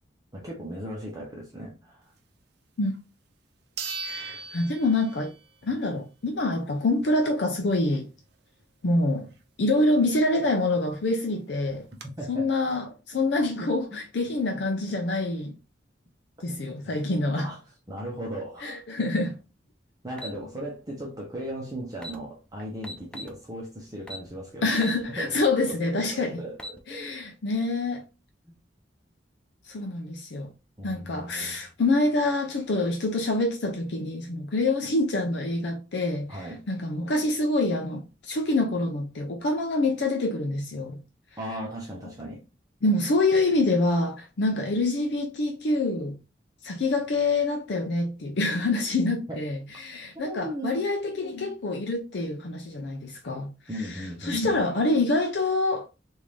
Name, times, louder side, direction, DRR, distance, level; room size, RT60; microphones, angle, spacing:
voice 1, 0.3-2.1 12.2-12.5 13.9-14.0 16.8-16.9 17.4-17.6 17.9-18.8 20.0-25.4 25.7-27.2 30.8-31.5 36.3-36.6 41.4-42.4 49.3-49.4 50.2-50.8 53.7-54.6, right 1 dB, 20° right, 0.8 m, -37 dB
sound 1, 2.9-3.0 3.8-5.5 5.9-6.0 10.6-10.7 10.9-11.0 11.6-12.0, right 4 dB, 60° right, 0.7 m, -37 dB
voice 2, 4.0-5.3 5.6-8.1 8.8-9.3 9.6-11.9 12.3-15.5 16.4-17.5 18.6-19.4 24.6-26.4 26.9-28.0 29.7-30.5 30.8-41.0 42.8-46.2 46.6-53.5 53.8-55.9, left 2 dB, 65° left, 0.5 m, -26 dB
sound 2, 20.2-20.4 21.6-21.7 21.9-22.2 22.8-23.4 24.1-24.3 24.8-25.0 25.5-25.6 26.4-26.8, equal, 5° left, 0.4 m, -38 dB
3.6 x 2.6 x 3.1 m
head